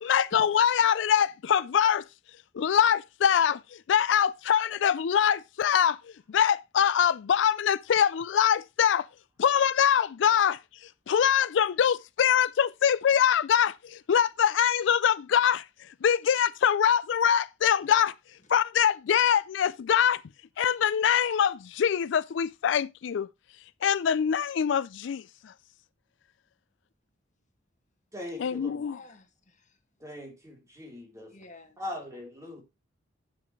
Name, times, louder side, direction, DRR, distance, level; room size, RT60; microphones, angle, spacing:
voice 1, 0.0-2.0 2.5-6.0 6.3-9.1 9.4-10.6 11.1-15.6 16.0-18.1 18.5-20.2 20.6-23.3 23.8-25.5 28.4-29.0, left 8 dB, 70° left, 0.4 m, -24 dB
voice 2, 28.1-28.8 30.0-31.3 31.8-32.6, left 1 dB, 15° right, 3.2 m, -40 dB
voice 3, 28.9-29.7 31.3-31.7, left 2 dB, 40° left, 1.8 m, -49 dB
9.7 x 7.5 x 3.1 m
head